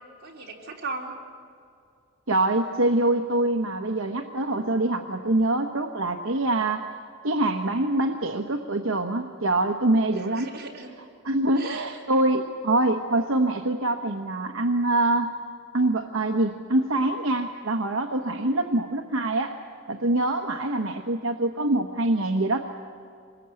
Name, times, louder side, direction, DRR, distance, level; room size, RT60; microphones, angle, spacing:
voice 1, 0.2-1.1 10.3-10.9 11.6-12.0 18.2-18.5, right 3 dB, 50° right, -2 dB, 3.7 m, -37 dB
voice 2, 2.3-6.9 7.2-10.5 11.2-15.3 15.7-19.5 19.9-22.6, right 2 dB, 75° right, 4 dB, 1.1 m, -24 dB
25.0 x 21.0 x 9.0 m, 2.3 s
head